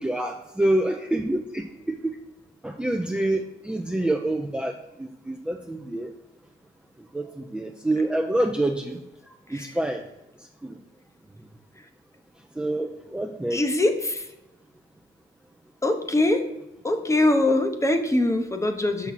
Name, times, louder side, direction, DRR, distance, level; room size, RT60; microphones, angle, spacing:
voice 1, 0.0-2.0 2.6-6.1 7.1-9.0 9.5-10.0 10.6-10.8 12.6-13.6, right 1 dB, 5° right, 2 dB, 0.5 m, -27 dB
voice 2, 13.5-14.3 15.8-16.5 16.8-19.1, left 2 dB, 15° left, 6 dB, 0.9 m, -23 dB
5.9 x 5.9 x 4.1 m, 0.92 s
cardioid pair, 90°, 20 cm